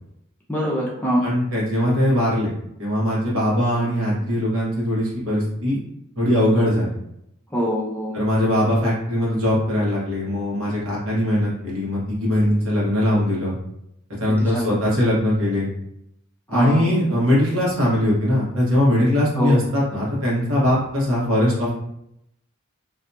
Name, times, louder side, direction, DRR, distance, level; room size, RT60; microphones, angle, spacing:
voice 1, 0.5-1.3 7.5-8.2 14.4-14.8 16.5-16.9 19.4-19.6, equal, 10° left, -4 dB, 0.5 m, -23 dB
voice 2, 1.2-2.5 2.8-5.8 6.2-6.9 8.1-13.6 14.2-15.7 16.5-21.7, left 1 dB, 75° right, -5 dB, 1.2 m, -21 dB
2.6 x 2.6 x 2.3 m, 0.79 s
head